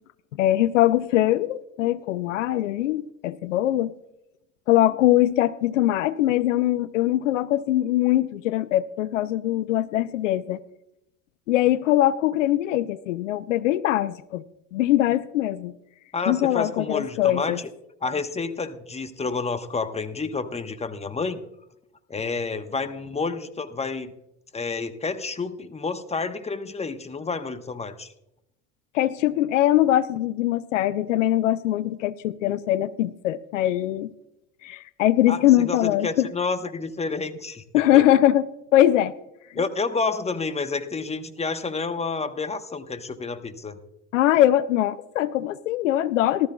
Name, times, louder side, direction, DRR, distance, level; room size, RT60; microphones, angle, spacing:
voice 1, 0.4-3.9 4.7-10.6 11.5-14.4 14.7-15.7 16.3-17.6 28.9-34.1 34.6-36.3 37.7-38.4 38.7-39.1 44.1-46.5, left 13 dB, 85° left, 18 dB, 0.5 m, -22 dB
voice 2, 16.1-17.7 18.0-21.4 22.1-24.1 24.5-28.1 35.3-37.6 37.9-38.1 39.5-43.8, left 4 dB, 15° left, 10 dB, 1.1 m, -29 dB
18.5 x 13.0 x 2.3 m, 0.83 s
hypercardioid pair, 70°, 37 cm